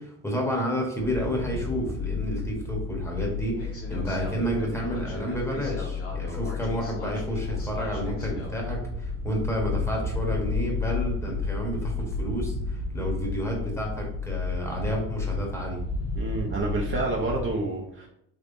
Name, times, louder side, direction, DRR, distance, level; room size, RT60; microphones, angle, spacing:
voice 1, 0.0-15.8, equal, 5° left, -1 dB, 1.0 m, -30 dB
sound 1, 1.0-17.5, left 4 dB, 35° left, 1.1 m, -32 dB
voice 2, 16.2-18.1, right 2 dB, 35° right, -1 dB, 0.5 m, -28 dB
3.6 x 3.0 x 2.5 m, 0.77 s
cardioid pair, 105°, 38 cm